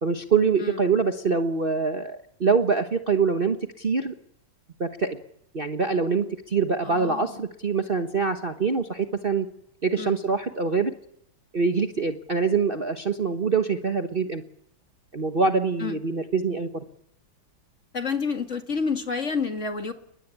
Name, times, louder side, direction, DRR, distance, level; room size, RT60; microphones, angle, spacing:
voice 1, 0.0-4.1 4.8-5.2 5.5-9.5 9.8-10.9 11.5-14.4 15.1-16.8, right 5 dB, 35° right, 6 dB, 1.2 m, -24 dB
voice 2, 6.8-7.4 10.0-10.2 15.8-16.0 17.9-19.9, left 5 dB, 40° left, 6 dB, 2.3 m, -29 dB
29.5 x 20.0 x 9.9 m, 0.73 s
omnidirectional pair, 2.1 m